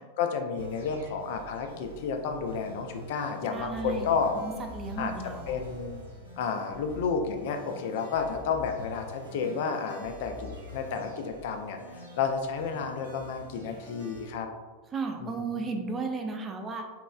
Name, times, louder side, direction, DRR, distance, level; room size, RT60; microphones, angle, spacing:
voice 1, 0.2-4.3 5.0-6.0 6.4-14.5 15.2-15.6, left 5 dB, 50° left, 5 dB, 0.4 m, -31 dB
sound 1, 0.6-14.3, left 1 dB, 80° right, 1.0 m, -45 dB
voice 2, 3.5-4.1 4.4-5.6 14.9-16.9, right 4 dB, 20° right, 4 dB, 0.4 m, -34 dB
3.7 x 3.0 x 2.3 m, 1.4 s
figure-of-eight pair, 90°, 0 cm